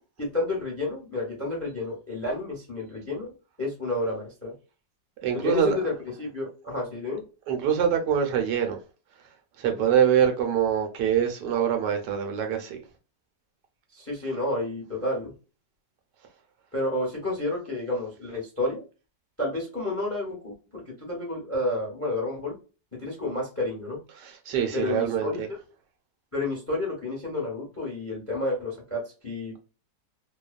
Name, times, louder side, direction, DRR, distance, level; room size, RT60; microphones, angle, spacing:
voice 1, 0.2-3.3 3.6-4.5 5.3-5.9 6.2-7.2 13.9-15.3 16.7-18.8 19.4-22.5 23.0-24.0 24.7-25.4 26.3-29.5, left 2 dB, 10° left, 0.7 m, -30 dB
voice 2, 5.2-5.8 7.5-8.8 9.6-12.8 24.2-25.5, right 8 dB, 75° right, 1.2 m, -24 dB
2.9 x 2.0 x 2.3 m
omnidirectional pair, 1.9 m